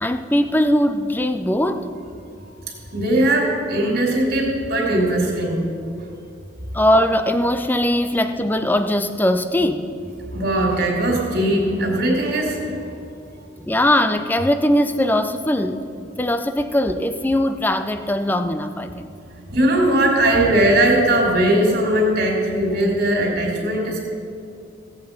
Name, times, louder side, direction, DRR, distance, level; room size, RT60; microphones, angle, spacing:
voice 1, 0.0-1.9 6.7-9.9 13.6-15.8 16.2-19.1, left 1 dB, 10° left, 9 dB, 0.5 m, -20 dB
voice 2, 2.9-5.6 10.3-12.9 19.5-24.0, right 1 dB, 50° right, -1 dB, 2.8 m, -19 dB
17.0 x 8.1 x 5.3 m, 2.6 s
head